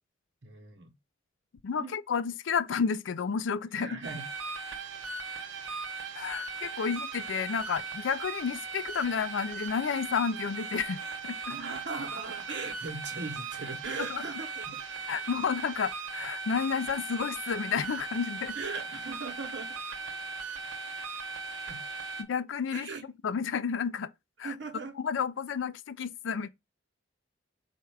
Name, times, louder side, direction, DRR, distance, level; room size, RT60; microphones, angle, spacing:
voice 1, 0.4-0.9 1.7-2.0 3.7-4.3 6.7-6.8 11.5-14.8 18.5-19.8 21.7-21.8 22.7-23.0 24.4-25.0, right 3 dB, 65° right, 0.9 m, -39 dB
voice 2, 1.6-3.9 6.1-11.5 14.1-14.2 15.1-18.6 22.2-22.9 23.2-24.1 24.4-24.5 25.0-26.5, left 6 dB, 75° left, 0.4 m, -31 dB
sound 1, 4.0-22.2, right 4 dB, 90° right, 0.9 m, -38 dB
4.3 x 2.4 x 4.6 m
head